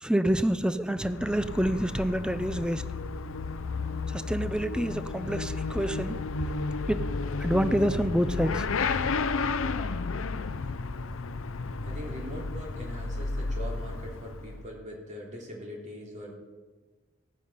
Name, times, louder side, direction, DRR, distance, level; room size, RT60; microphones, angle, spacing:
voice 1, 0.0-2.8 4.1-6.3 6.9-7.1 7.4-8.6, right 1 dB, 5° right, 12 dB, 0.5 m, -27 dB
Motorcycle / Accelerating revving vroom, 0.9-14.7, left 4 dB, 70° left, 0.6 m, -32 dB
voice 2, 9.1-9.8 11.8-16.3, equal, 35° right, -2 dB, 3.4 m, -42 dB
17.0 x 9.0 x 5.5 m, 1.4 s
head